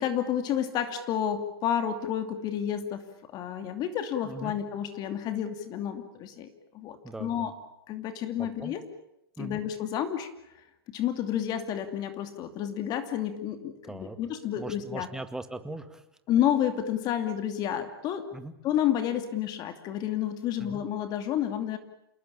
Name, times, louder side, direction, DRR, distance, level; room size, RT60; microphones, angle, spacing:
voice 1, 0.0-7.5 7.9-8.8 9.4-10.3 10.9-15.1 16.3-18.3 18.6-21.8, left 10 dB, 35° left, 8 dB, 2.7 m, -30 dB
voice 2, 4.2-4.6 7.0-7.5 8.4-8.7 9.4-9.6 13.8-14.2 14.6-16.0 18.3-18.5 20.6-20.8, right 2 dB, 5° right, 9 dB, 1.9 m, -40 dB
28.0 x 19.5 x 8.7 m, 0.84 s
hypercardioid pair, 125°, 13 cm